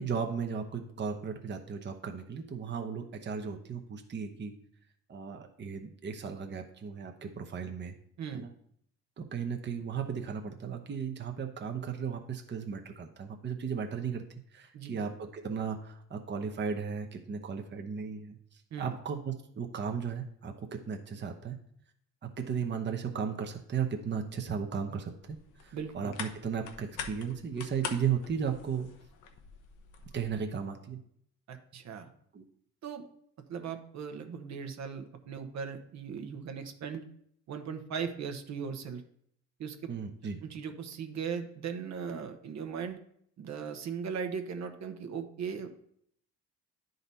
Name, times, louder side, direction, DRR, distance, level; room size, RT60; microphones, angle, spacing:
voice 1, 0.0-4.6 5.1-8.0 8.3-8.5 9.2-14.3 14.5-21.6 22.2-28.9 30.1-31.0 32.3-32.4 39.9-40.4, right 6 dB, 35° right, 4 dB, 0.9 m, -35 dB
sound 1, 25.2-30.4, left 7 dB, 90° left, 1.0 m, -44 dB
voice 2, 25.7-26.1 31.5-32.1 32.8-33.1 33.5-37.0 37.5-39.0 39.6-39.8 40.4-43.0 43.4-45.7, right 6 dB, 65° right, 7 dB, 1.0 m, -38 dB
10.0 x 4.0 x 4.1 m, 0.67 s
cardioid pair, 90°, 30 cm